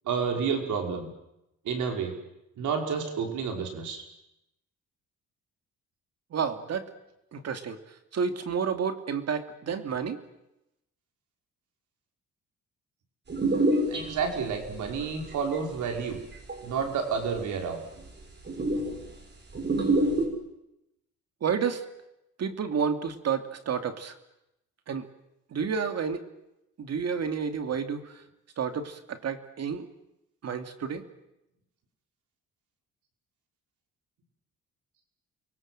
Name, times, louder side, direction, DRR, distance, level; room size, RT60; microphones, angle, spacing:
voice 1, 0.1-1.1 1.7-2.2 2.6-4.0 13.9-16.2 16.6-17.8, right 6 dB, 75° right, 3 dB, 5.4 m, -30 dB
voice 2, 6.3-6.9 7.3-7.8 8.1-10.2 21.4-21.8 22.4-24.1 24.9-25.0 25.5-26.2 26.8-28.1 28.6-29.9 30.4-31.0, right 6 dB, 55° right, 8 dB, 2.7 m, -30 dB
sound 1, 13.3-15.0 15.3-16.6 17.3-17.4 17.7-17.8 18.0-18.1 18.5-19.1 19.5-20.3, right 2 dB, 35° right, 6.6 m, -26 dB
29.0 x 23.5 x 7.8 m, 0.89 s
cardioid pair, 90°, 30 cm